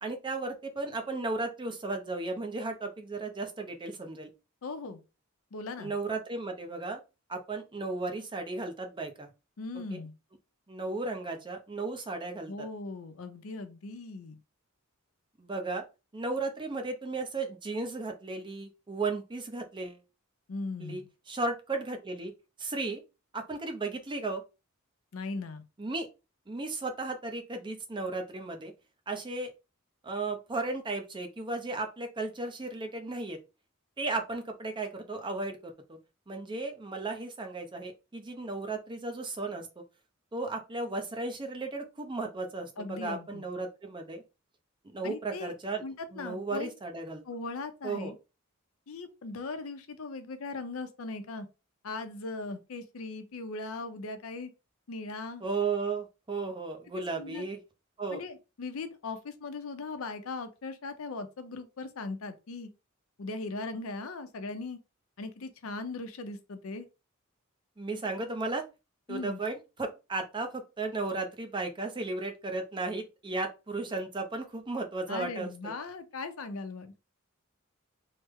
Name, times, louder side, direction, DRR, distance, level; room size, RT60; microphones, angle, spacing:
voice 1, 0.0-4.3 5.8-7.0 7.3-9.3 9.9-10.0 10.7-12.5 15.4-15.8 16.1-20.0 20.8-22.3 22.6-23.0 23.3-24.4 25.8-26.1 26.5-28.7 29.1-29.5 30.0-33.4 34.0-36.0 36.3-39.8 40.3-44.2 44.9-45.8 46.1-47.2 47.8-48.1 55.4-57.6 58.0-58.2 67.8-68.6 69.1-75.7, right 3 dB, 25° right, 0.6 m, -35 dB
voice 2, 4.6-5.0 5.5-5.9 9.6-10.1 12.5-14.4 20.5-21.1 25.1-25.6 42.8-43.4 45.0-45.5 45.8-46.7 47.2-48.2 48.9-51.5 51.8-54.5 54.9-55.4 56.9-57.4 58.1-62.7 63.2-64.8 65.2-66.9 69.1-69.4 75.1-76.9, left 3 dB, 75° left, 0.6 m, -39 dB
3.2 x 2.1 x 3.5 m
head